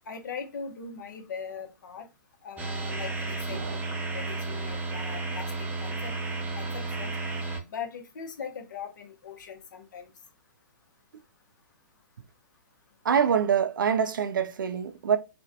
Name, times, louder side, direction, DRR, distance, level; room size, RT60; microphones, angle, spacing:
voice 1, 0.1-2.1 2.4-6.1 6.6-7.1 7.7-10.1, left 6 dB, 65° left, 0.7 m, -40 dB
sound 1, 2.6-7.6, right 3 dB, 15° right, 0.4 m, -33 dB
voice 2, 13.0-15.2, right 7 dB, 80° right, 0.4 m, -25 dB
2.5 x 2.1 x 2.5 m
hypercardioid pair, 125°, 11 cm